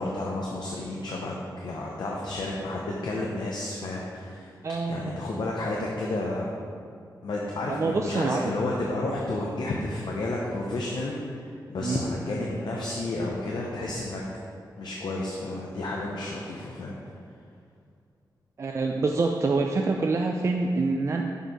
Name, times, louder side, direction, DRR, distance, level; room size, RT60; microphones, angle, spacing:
voice 1, 0.0-4.5 4.9-6.6 7.2-14.2 14.8-16.9, left 2 dB, 70° left, -3 dB, 0.8 m, -31 dB
voice 2, 4.6-5.1 7.7-8.5 11.8-12.0 18.6-21.2, right 3 dB, 40° right, 2 dB, 0.3 m, -26 dB
6.8 x 4.5 x 5.0 m, 2.3 s
wide cardioid pair, 150°, 8 cm